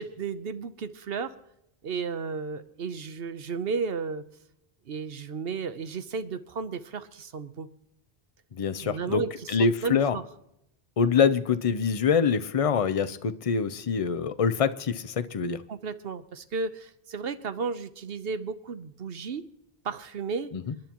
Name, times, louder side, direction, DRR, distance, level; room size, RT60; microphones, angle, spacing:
voice 1, 0.0-1.4 1.8-4.3 4.9-7.7 8.8-10.3 15.7-19.5 19.8-20.5, right 5 dB, 70° right, 12 dB, 1.1 m, -33 dB
voice 2, 8.5-9.2 9.5-10.2 11.0-15.6 20.5-20.7, left 6 dB, 40° left, 11 dB, 0.7 m, -25 dB
27.5 x 10.5 x 3.0 m, 0.81 s
omnidirectional pair, 1.1 m